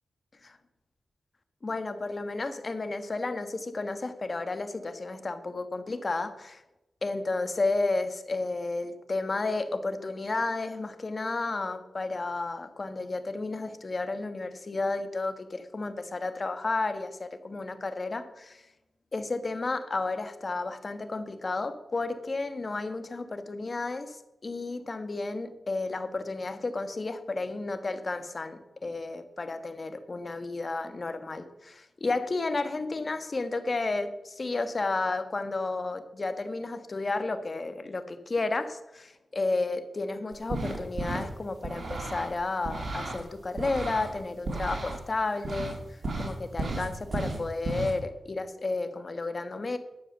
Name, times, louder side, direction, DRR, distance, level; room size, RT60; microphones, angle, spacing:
voice 1, 1.6-6.6 7.0-18.6 19.1-49.8, left 3 dB, 45° left, 9 dB, 1.4 m, -32 dB
sound 1, 40.3-41.3 41.6-43.2 43.6-45.0 45.4-45.8 46.0-47.9, right 2 dB, 60° right, 2.7 m, -33 dB
11.0 x 7.2 x 6.8 m, 0.94 s
cardioid pair, 50°, 0 cm